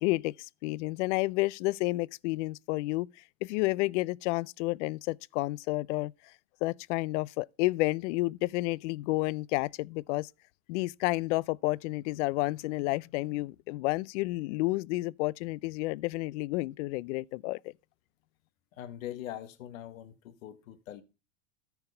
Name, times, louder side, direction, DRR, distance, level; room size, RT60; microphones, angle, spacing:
voice 1, 0.0-3.1 3.4-6.1 6.6-10.3 10.7-17.7, left 21 dB, 60° left, 0.5 m, -30 dB
voice 2, 18.8-21.0, left 12 dB, 90° left, 1.5 m, -42 dB
13.5 x 4.6 x 5.4 m
supercardioid pair, 140°, 39 cm